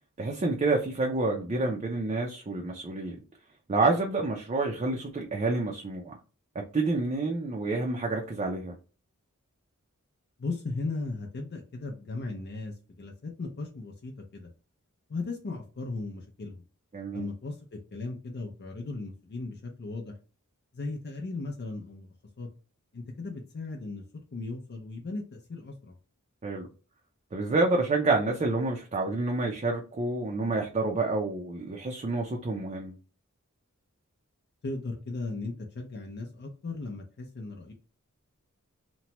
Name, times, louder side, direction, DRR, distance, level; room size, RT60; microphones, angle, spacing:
voice 1, 0.2-3.2 3.7-6.1 6.7-8.8 16.9-17.3 26.4-26.7 27.3-32.9, right 3 dB, 30° right, 1 dB, 0.4 m, -28 dB
voice 2, 10.4-14.5 15.1-16.6 17.1-17.6 17.9-20.1 20.7-22.1 22.4-22.5 22.9-24.0 24.3-26.0 34.6-37.7, left 3 dB, 50° left, 1 dB, 0.5 m, -37 dB
2.9 x 2.1 x 2.8 m, 0.35 s
head